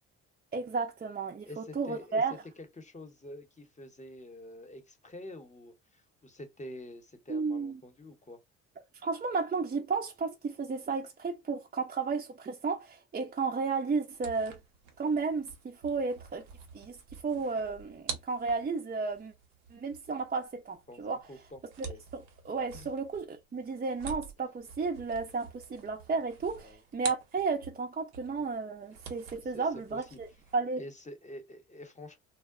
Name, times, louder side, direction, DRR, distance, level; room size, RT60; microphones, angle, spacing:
voice 1, 0.5-2.4 7.3-7.8 9.0-14.6 15.0-16.4 16.7-17.0 17.2-19.3 19.7-21.2 21.8-21.9 22.1-30.3 30.5-30.8, right 4 dB, 25° right, 0.6 m, -33 dB
voice 2, 1.5-8.4 20.9-22.0 22.7-22.9 26.6-26.8 29.5-29.6 29.9-30.2 30.8-32.2, left 1 dB, 20° left, 0.9 m, -47 dB
sound 1, 14.1-27.8 28.1-30.6, right 6 dB, 80° right, 0.8 m, -47 dB
2.2 x 2.1 x 3.6 m
supercardioid pair, 65°, 34 cm